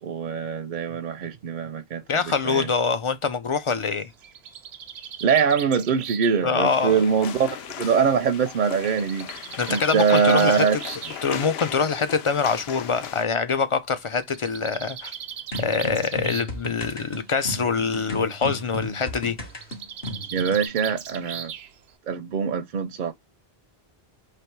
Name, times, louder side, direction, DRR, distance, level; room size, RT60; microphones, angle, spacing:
voice 1, 0.0-2.0 2.4-2.7 5.2-9.3 9.7-10.8 20.3-21.5 22.1-23.1, right 6 dB, 55° right, 0.6 m, -23 dB
voice 2, 2.1-4.1 6.4-7.0 9.6-10.8 11.2-15.1 15.6-19.4, left 5 dB, 50° left, 0.4 m, -24 dB
Bird, 4.0-7.8 8.9-11.2 12.3-12.4 12.7-12.8 13.1-13.2 14.2-16.6 16.9-17.4 19.5-21.9, right 8 dB, 90° right, 0.9 m, -38 dB
sound 1, 6.6-13.3, left 9 dB, 80° left, 0.8 m, -38 dB
sound 2, 15.5-20.7, left 1 dB, 65° left, 1.5 m, -35 dB
3.4 x 2.9 x 4.4 m
omnidirectional pair, 1.0 m